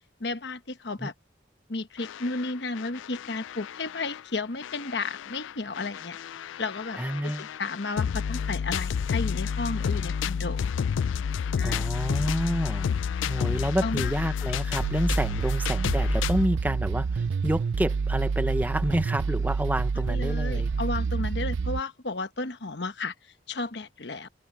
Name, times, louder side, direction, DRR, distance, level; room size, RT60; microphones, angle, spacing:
voice 1, 0.2-1.1 1.7-6.2 6.6-10.7 11.6-11.9 13.2-13.3 13.8-14.1 19.9-23.1 23.5-24.3, left 3 dB, 65° left, 1.1 m, -33 dB
sound 1, 2.0-4.2 4.6-16.5, left 7 dB, 90° left, 0.4 m, -30 dB
voice 2, 7.0-7.5 11.6-12.9 13.2-20.7, right 1 dB, 10° right, 0.8 m, -29 dB
sound 2, 14.8-21.8, right 4 dB, 80° right, 0.5 m, -28 dB
head